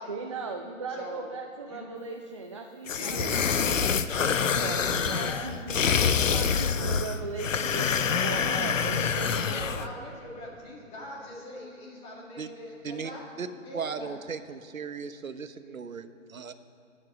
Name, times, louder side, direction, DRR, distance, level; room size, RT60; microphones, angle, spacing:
voice 1, 0.1-3.8 4.2-9.9, right 3 dB, 25° right, 2 dB, 0.5 m, -38 dB
sound 1, 2.9-9.9, left 6 dB, 70° left, 0.8 m, -26 dB
voice 2, 2.9-3.8 4.9-5.6 9.4-13.3 13.6-14.2, left 1 dB, 15° left, -2 dB, 2.2 m, -41 dB
sound 2, 3.1-3.4 4.8-6.3 6.7-7.1 7.4-7.5 7.8-9.4, left 1 dB, 35° left, 3.3 m, -40 dB
voice 3, 13.7-16.5, right 6 dB, 75° right, 10 dB, 1.1 m, -37 dB
19.0 x 7.7 x 6.1 m, 2.7 s
hypercardioid pair, 150°, 41 cm